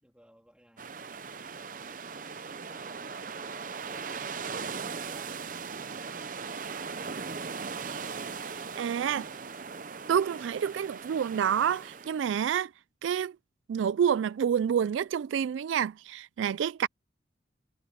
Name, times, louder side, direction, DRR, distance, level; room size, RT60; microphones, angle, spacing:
voice 1, 0.0-0.9 2.7-6.7, equal, 5° right, 3.3 m, -58 dB
sound 1, 0.8-12.3, right 5 dB, 45° right, 0.7 m, -39 dB
voice 2, 8.5-9.3 10.1-12.7 13.0-13.4 13.7-16.9, right 8 dB, 85° right, 0.3 m, -28 dB
head